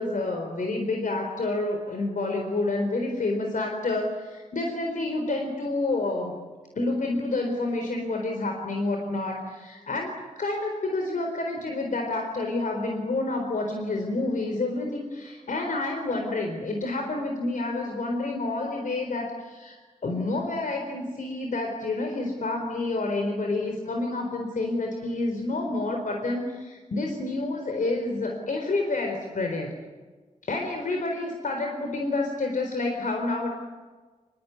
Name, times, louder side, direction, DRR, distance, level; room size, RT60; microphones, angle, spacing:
voice 1, 0.0-6.4 6.8-19.8 20.0-29.7 30.4-33.5, left 2 dB, 80° left, 3 dB, 4.2 m, -29 dB
26.0 x 22.0 x 9.6 m, 1.4 s
wide cardioid pair, 85°, 13 cm